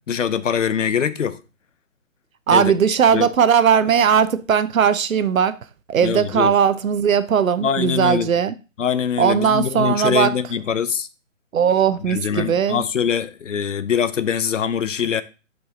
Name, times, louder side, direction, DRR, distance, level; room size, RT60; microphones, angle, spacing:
voice 1, 0.1-1.4 2.5-2.7 3.1-3.3 6.0-6.5 7.6-8.3 8.8-11.1 12.0-15.2, left 8 dB, 65° left, 0.8 m, -23 dB
voice 2, 2.5-5.6 5.9-8.5 9.2-10.4 11.5-12.8, right 7 dB, 85° right, 0.8 m, -18 dB
7.2 x 4.8 x 4.0 m
hypercardioid pair, 175°, 40 cm